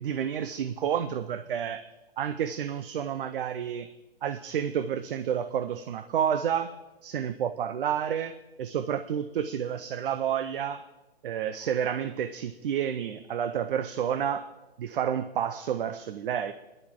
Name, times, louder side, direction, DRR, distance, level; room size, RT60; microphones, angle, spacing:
voice 1, 0.0-3.9 4.2-10.8 11.2-14.5 14.8-16.5, right 9 dB, 60° right, 11 dB, 0.8 m, -30 dB
23.0 x 11.0 x 3.7 m, 1.1 s
hypercardioid pair, 150°, 31 cm